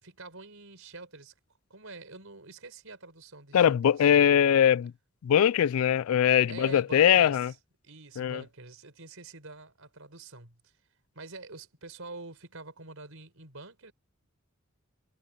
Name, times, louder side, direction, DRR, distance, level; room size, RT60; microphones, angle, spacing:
voice 1, 0.0-1.3 1.7-4.1 6.5-7.5 7.8-10.7 11.1-13.9, right 3 dB, 70° right, 4.5 m, -46 dB
voice 2, 3.5-4.9 5.2-7.5 8.2-8.4, left 9 dB, 75° left, 0.3 m, -22 dB
head